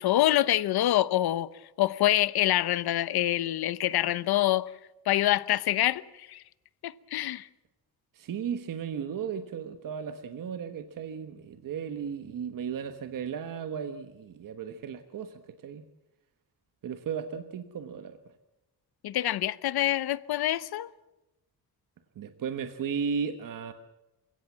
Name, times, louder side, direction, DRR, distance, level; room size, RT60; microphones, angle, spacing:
voice 1, 0.0-1.5 1.8-4.7 5.1-6.4 6.8-7.5 19.0-20.9, left 14 dB, 70° left, 0.9 m, -26 dB
voice 2, 8.1-15.8 16.8-18.2 22.2-23.7, right 7 dB, 55° right, 1.3 m, -35 dB
28.5 x 17.0 x 7.4 m
cardioid pair, 140°, 39 cm